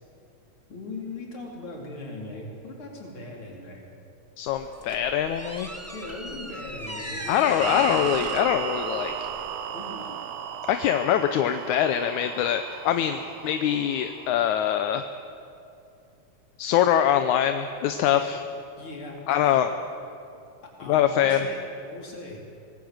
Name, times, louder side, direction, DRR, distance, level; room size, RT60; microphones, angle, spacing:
voice 1, 0.7-3.8 5.9-7.7 9.7-10.2 17.9-18.3 18.8-19.6 20.8-22.4, left 2 dB, 40° left, -1 dB, 4.9 m, -39 dB
voice 2, 4.4-5.7 7.3-9.3 10.7-15.1 16.6-18.4 19.3-19.7 20.9-21.5, left 10 dB, 75° left, 8 dB, 2.1 m, -23 dB
sound 1, 4.5-9.7, right 1 dB, 10° right, 0.7 m, -38 dB
sound 2, 7.6-14.8, right 9 dB, 65° right, 1.8 m, -35 dB
25.5 x 19.0 x 8.0 m, 2.6 s
omnidirectional pair, 3.5 m